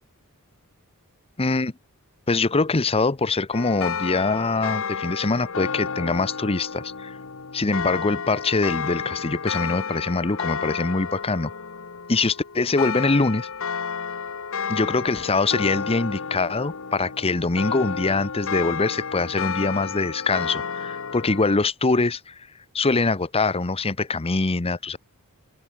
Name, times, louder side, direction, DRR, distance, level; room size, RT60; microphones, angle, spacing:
voice 1, 1.4-1.7 2.3-7.2 7.5-11.5 12.1-13.5 14.7-22.3 22.7-25.0, left 3 dB, 25° left, 0.8 m, -23 dB
sound 1, 3.5-21.6, left 6 dB, 65° left, 1.2 m, -31 dB
open air
head